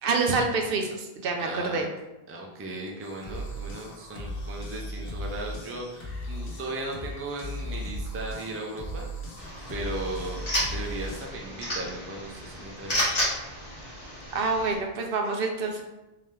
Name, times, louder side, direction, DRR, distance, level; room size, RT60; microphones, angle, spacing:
voice 1, 0.0-1.9 14.3-15.8, right 3 dB, 70° right, 3 dB, 0.7 m, -27 dB
voice 2, 1.4-1.9 2.3-9.1 9.7-13.1, right 2 dB, 20° right, 0 dB, 0.4 m, -37 dB
sound 1, 3.0-11.2, equal, 65° left, 1.0 m, -37 dB
sound 2, 9.4-14.8, equal, 40° left, 1.2 m, -32 dB
3.7 x 2.8 x 3.2 m, 0.99 s
omnidirectional pair, 1.0 m